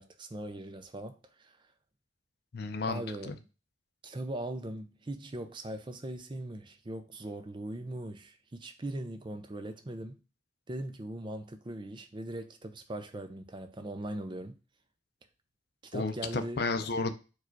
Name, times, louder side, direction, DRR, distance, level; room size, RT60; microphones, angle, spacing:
voice 1, 0.0-1.7 2.9-3.3 4.0-10.2 10.7-14.6 15.9-16.6, right 1 dB, 25° right, 0.5 m, -40 dB
voice 2, 2.5-3.4 15.9-17.1, left 3 dB, 60° left, 0.5 m, -33 dB
4.7 x 2.4 x 4.5 m
head